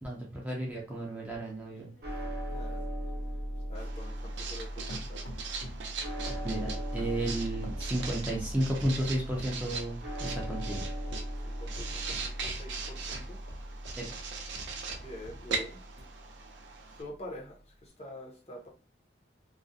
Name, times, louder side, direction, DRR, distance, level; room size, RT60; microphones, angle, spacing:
voice 1, 0.0-1.9 6.4-10.8 14.0-14.2, right 1 dB, 10° right, -3 dB, 0.4 m, -33 dB
sound 1, 1.3-4.6 4.9-5.9 6.3-8.6 9.0-9.9 10.4-11.2 11.8-14.0 14.5-15.4 16.0-16.1, equal, 80° left, 0.6 m, -48 dB
sound 2, 2.0-16.3, equal, 55° right, 0.7 m, -39 dB
voice 2, 2.5-2.8 3.7-5.3 11.4-13.4 15.0-15.8 17.0-18.7, left 1 dB, 35° left, -2 dB, 0.6 m, -46 dB
Writing, 3.7-17.0, right 5 dB, 80° right, 0.4 m, -41 dB
2.3 x 2.0 x 2.6 m, 0.35 s
head